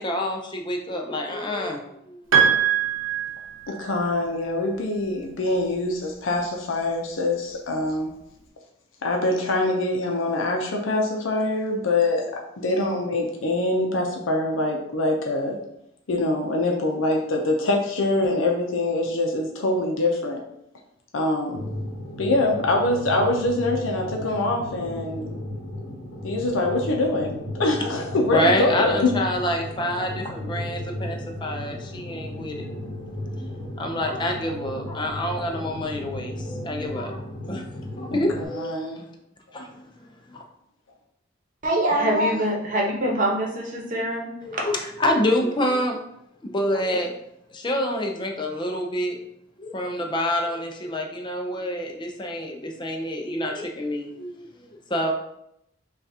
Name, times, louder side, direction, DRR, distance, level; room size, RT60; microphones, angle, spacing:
voice 1, 0.0-2.2 28.3-32.6 33.4-33.5 33.8-37.2 37.5-37.7 38.0-39.1 39.5-39.8 40.3-40.4 44.4-46.0 46.4-47.1 47.5-49.2 49.6-55.1, left 1 dB, 25° left, 2 dB, 0.5 m, -27 dB
Piano, 2.3-4.0, right 8 dB, 90° right, 0.8 m, -22 dB
voice 2, 3.7-8.1 9.0-12.3 12.6-15.6 16.1-20.4 21.1-21.6 22.2-25.4 26.2-29.1 38.1-39.0, left 2 dB, 90° left, 1 dB, 0.6 m, -24 dB
sound 1, 21.5-38.5, left 1 dB, 55° left, 1.1 m, -35 dB
voice 3, 41.6-44.3, right 1 dB, 45° right, -1 dB, 1.0 m, -23 dB
5.5 x 2.4 x 2.8 m, 0.80 s
head